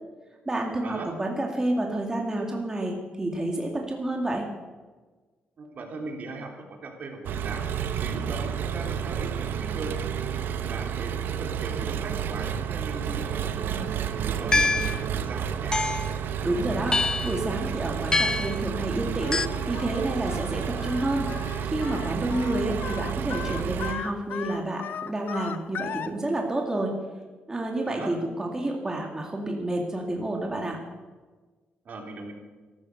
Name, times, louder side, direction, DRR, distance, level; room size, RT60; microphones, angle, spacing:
voice 1, 0.5-4.5 16.4-21.3 21.6-26.9 27.5-30.8, right 1 dB, 15° right, 1 dB, 2.3 m, -29 dB
voice 2, 5.6-7.7 8.0-9.9 10.6-13.8 14.3-15.9 27.9-28.1 31.8-32.3, right 3 dB, 50° right, 1 dB, 3.7 m, -38 dB
Engine, 7.2-23.9, right 8 dB, 70° right, 1.0 m, -31 dB
sound 1, 14.5-15.0 15.7-16.1 16.9-17.4 18.1-18.6 19.3-19.5, left 3 dB, 20° left, 0.4 m, -24 dB
Singing, 19.2-26.1, left 8 dB, 65° left, 0.8 m, -37 dB
14.0 x 12.5 x 6.7 m, 1.3 s
cardioid pair, 100°, 4 cm